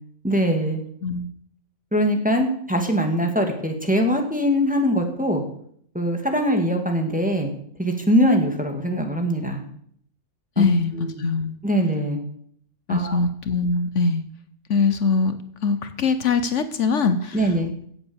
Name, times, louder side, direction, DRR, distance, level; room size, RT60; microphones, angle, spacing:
voice 1, 0.2-0.8 1.9-5.4 5.9-7.5 7.8-9.6 10.6-10.7 10.9-11.1 11.6-12.2 12.9-13.2 17.3-17.7, equal, 5° right, 3 dB, 2.1 m, -22 dB
voice 2, 10.6-11.5 12.9-14.2 14.7-17.5, left 4 dB, 70° left, 11 dB, 1.2 m, -22 dB
16.0 x 7.8 x 7.1 m, 0.64 s
omnidirectional pair, 1.3 m